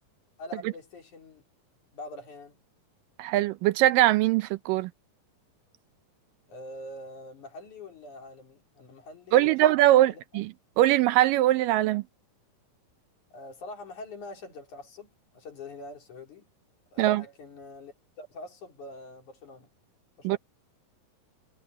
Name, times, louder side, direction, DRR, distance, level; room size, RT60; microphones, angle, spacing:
voice 1, 0.4-1.4 1.9-2.6 6.5-10.2 13.3-16.4 16.9-19.7 20.2-20.4, left 2 dB, 60° left, 5.2 m, -44 dB
voice 2, 3.2-4.9 9.3-12.0 17.0-17.2 20.2-20.4, right 14 dB, 80° right, 2.3 m, -22 dB
omnidirectional pair, 4.0 m